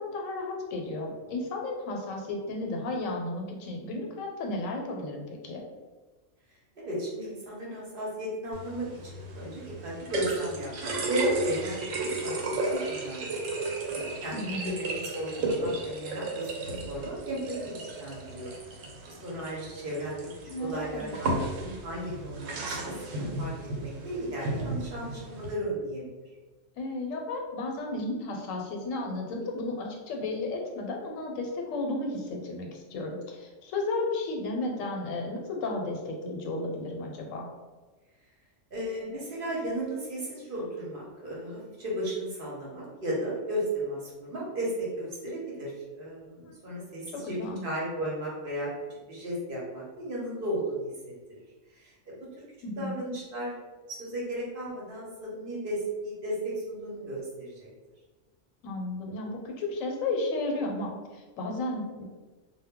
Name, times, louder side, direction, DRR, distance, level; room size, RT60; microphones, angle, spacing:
voice 1, 0.0-5.6 14.3-14.7 20.4-21.1 26.8-37.5 46.5-46.6 47.1-47.7 52.6-53.0 58.6-62.0, left 2 dB, 90° left, 1 dB, 1.0 m, -33 dB
voice 2, 6.8-13.3 13.6-18.5 19.0-20.3 20.6-21.3 21.6-22.9 23.2-23.5 23.8-26.3 38.7-45.7 46.0-47.4 47.6-50.9 51.7-52.3 52.8-53.5 53.9-57.7, right 1 dB, 50° right, -4 dB, 0.8 m, -35 dB
sound 1, 8.5-25.5, right 2 dB, 85° right, 1.0 m, -34 dB
2.1 x 2.1 x 3.5 m, 1.2 s
omnidirectional pair, 1.3 m